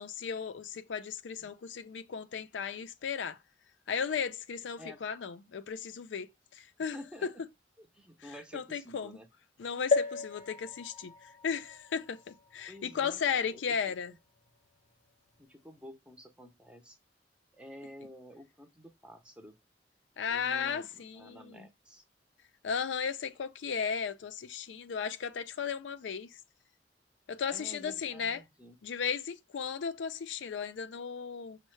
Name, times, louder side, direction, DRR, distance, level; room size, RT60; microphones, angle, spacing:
voice 1, 0.0-3.4 3.9-6.3 6.5-7.0 7.2-7.3 8.5-9.2 9.6-14.1 20.2-21.7 22.6-26.3 27.3-28.4 28.8-31.6, left 6 dB, 85° left, 0.4 m, -35 dB
voice 2, 6.9-7.3 7.8-9.3 12.7-14.2 15.4-17.0 17.5-19.6 20.3-22.0 27.5-28.8, equal, 5° right, 0.5 m, -50 dB
sound 1, 9.9-13.6 14.2-14.3 14.5-14.6, left 4 dB, 40° left, 0.7 m, -35 dB
5.4 x 2.1 x 3.1 m
head